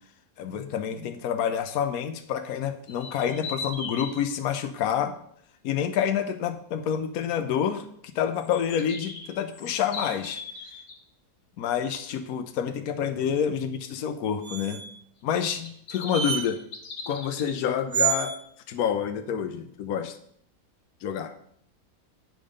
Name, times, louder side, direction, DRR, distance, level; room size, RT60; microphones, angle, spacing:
voice 1, 0.4-5.1 5.6-7.9 8.1-10.4 11.6-14.8 15.2-16.6 17.1-18.3 18.7-20.2 21.0-21.3, left 8 dB, 70° left, 8 dB, 1.1 m, -28 dB
sound 1, 2.9-4.2 8.4-11.0 15.3-17.5, left 4 dB, 85° left, 1.9 m, -39 dB
sound 2, 14.4-15.0 16.1-16.5 17.9-18.4, right 8 dB, 70° right, 0.4 m, -27 dB
8.9 x 5.4 x 5.1 m, 0.66 s
omnidirectional pair, 1.7 m